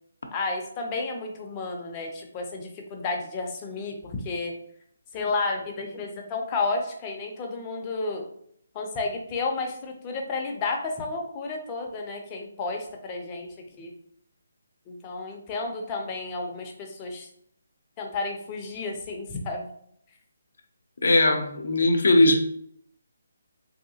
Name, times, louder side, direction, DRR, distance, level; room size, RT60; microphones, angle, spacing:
voice 1, 0.3-4.5 5.1-8.3 8.7-13.5 13.8-13.9 14.9-17.3 18.0-19.7, left 3 dB, 20° left, 1 dB, 0.5 m, -31 dB
voice 2, 21.0-22.4, left 2 dB, 75° left, 3 dB, 0.5 m, -19 dB
3.2 x 2.7 x 2.8 m, 0.67 s
hypercardioid pair, 160°, 0 cm